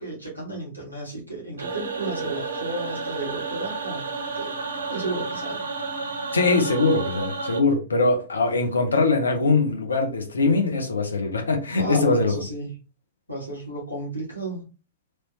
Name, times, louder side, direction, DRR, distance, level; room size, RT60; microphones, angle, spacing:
voice 1, 0.0-4.5 4.9-5.6 11.7-12.8 13.3-14.6, right 2 dB, 90° left, 1.4 m, -33 dB
sound 1, 1.6-7.6, right 4 dB, 70° right, 0.5 m, -31 dB
voice 2, 6.3-12.3, left 3 dB, 75° left, 0.7 m, -22 dB
3.2 x 2.7 x 3.0 m
figure-of-eight pair, 95°, 0 cm